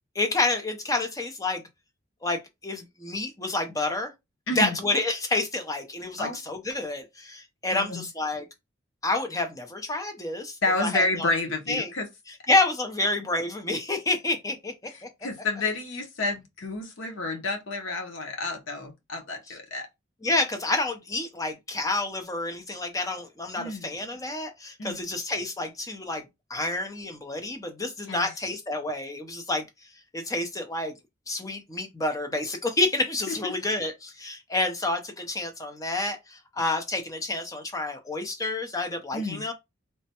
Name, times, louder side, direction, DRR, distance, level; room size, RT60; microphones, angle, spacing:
voice 1, 0.2-1.6 2.2-4.1 4.5-8.4 9.0-11.3 11.7-11.9 12.5-14.9 20.2-26.2 26.5-29.6 30.1-30.9 31.3-39.5, left 2 dB, 15° left, 0.5 m, -29 dB
voice 2, 4.5-4.8 6.2-6.4 7.7-8.1 10.6-12.1 15.2-19.9 23.5-23.9 24.8-25.1 28.1-28.3 33.3-33.5 39.1-39.5, left 2 dB, 70° left, 0.8 m, -30 dB
3.2 x 2.1 x 2.8 m
head